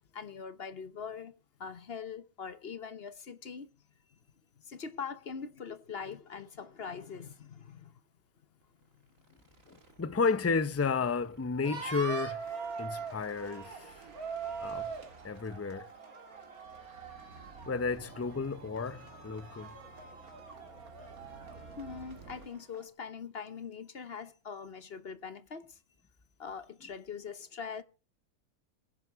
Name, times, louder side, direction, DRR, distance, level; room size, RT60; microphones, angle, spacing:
voice 1, 0.1-1.3 1.6-3.7 4.6-7.9 8.9-9.0 21.8-25.8 26.4-27.8, left 6 dB, 50° left, 1.1 m, -42 dB
sound 1, 5.8-5.9 6.3-6.4 6.6-6.8 7.1-7.3 8.6-22.5, right 3 dB, 65° right, 2.4 m, -56 dB
voice 2, 9.7-12.4 12.8-13.9 14.6-14.9 15.2-15.9 17.7-19.7, left 4 dB, 20° left, 0.4 m, -32 dB
sound 2, 11.6-22.8, right 5 dB, 80° right, 2.9 m, -43 dB
21.5 x 10.0 x 4.7 m
omnidirectional pair, 1.5 m